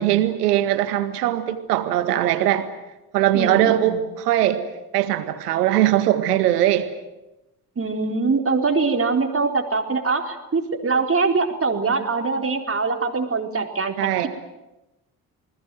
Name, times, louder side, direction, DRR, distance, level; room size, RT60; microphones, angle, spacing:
voice 1, 0.0-2.7 3.1-4.6 4.9-6.9 14.0-14.3, right 13 dB, 85° right, 10 dB, 1.8 m, -20 dB
voice 2, 3.3-4.0 7.8-14.3, right 4 dB, 30° right, 3 dB, 4.1 m, -23 dB
29.0 x 20.0 x 7.7 m, 0.97 s
hypercardioid pair, 50°, 46 cm